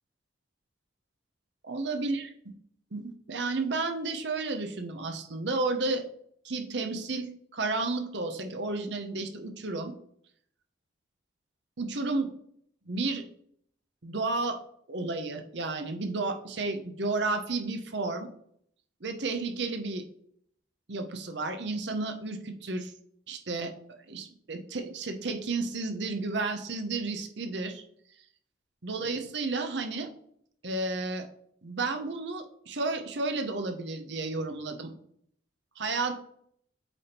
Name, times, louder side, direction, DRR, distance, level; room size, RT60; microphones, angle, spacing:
voice 1, 1.7-2.3 2.9-6.0 6.4-9.9 11.8-12.3 12.9-13.2 14.0-14.6 14.9-18.3 19.0-20.0 20.9-22.9 23.3-23.7 24.1-27.8 28.8-30.1 30.6-31.3 31.6-34.9 35.8-36.1, right 3 dB, 65° right, 6 dB, 0.9 m, -32 dB
8.3 x 3.5 x 4.3 m, 0.67 s
head